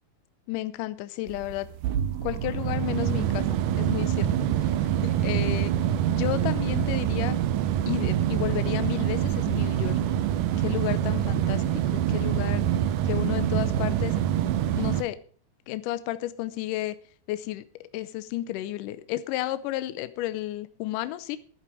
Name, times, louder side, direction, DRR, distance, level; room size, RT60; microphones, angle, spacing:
voice 1, 0.5-1.7 2.2-4.3 4.6-4.7 5.0-5.7 6.1-7.4 7.9-10.0 10.6-11.6 11.9-12.6 13.1-14.2 14.8-15.2 15.7-17.0 17.3-17.6 17.9-21.4, left 15 dB, 75° left, 13 dB, 2.0 m, -32 dB
sound 1, 1.3-15.0, right 11 dB, 75° right, 2.0 m, -25 dB
11.5 x 10.5 x 4.8 m, 0.44 s
omnidirectional pair, 4.3 m